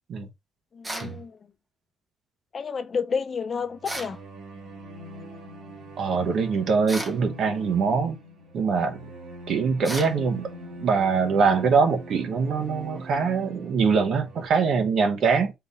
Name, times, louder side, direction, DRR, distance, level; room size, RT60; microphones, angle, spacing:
voice 1, 0.7-1.4 2.5-4.2, left 5 dB, 30° left, 0.3 m, -30 dB
sound 1, 0.8-1.2 3.8-4.2 6.9-7.2 9.8-10.2, right 1 dB, 10° right, 0.7 m, -34 dB
sound 2, 3.5-14.5, right 1 dB, 75° right, 1.5 m, -42 dB
voice 2, 6.0-8.2 8.5-9.1 9.5-10.5 10.8-15.5, right 5 dB, 50° right, 0.8 m, -23 dB
3.9 x 2.6 x 4.0 m
cardioid pair, 165°, 0 cm